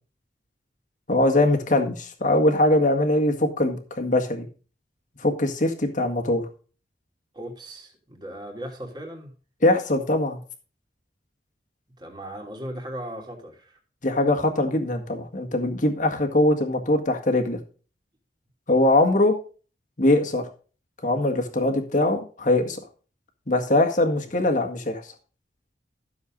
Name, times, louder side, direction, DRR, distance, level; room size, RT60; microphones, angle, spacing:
voice 1, 1.1-4.5 5.2-6.4 9.6-10.4 14.0-17.6 18.7-19.3 20.0-20.4 21.0-22.8 23.5-25.0, left 1 dB, 45° left, 4 dB, 1.9 m, -22 dB
voice 2, 7.3-9.3 12.0-13.8 24.1-24.2, right 1 dB, 25° right, 1 dB, 2.8 m, -37 dB
13.5 x 7.1 x 3.9 m, 0.38 s
head